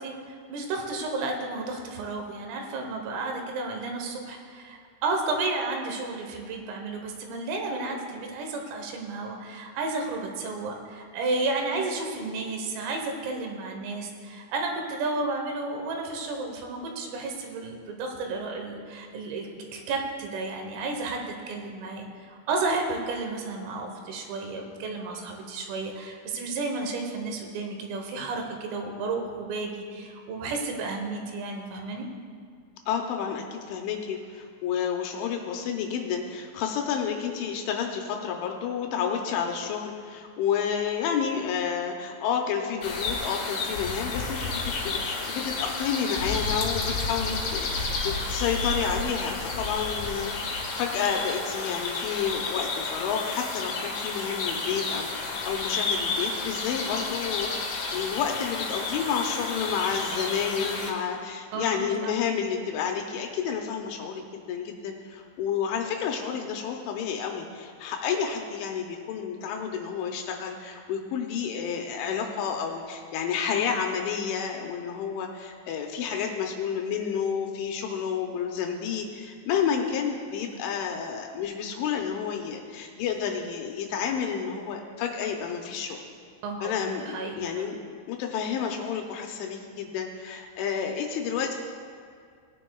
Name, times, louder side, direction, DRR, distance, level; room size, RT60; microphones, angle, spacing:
voice 1, 0.0-32.1 61.5-62.1 86.4-87.7, right 3 dB, 85° right, 2 dB, 3.8 m, -32 dB
voice 2, 32.9-86.0 86.6-87.8 88.1-91.5, left 7 dB, 80° left, 2 dB, 3.0 m, -30 dB
sound 1, 42.8-60.9, left 3 dB, 65° left, 2.3 m, -31 dB
19.5 x 10.0 x 2.3 m, 2.1 s
omnidirectional pair, 5.8 m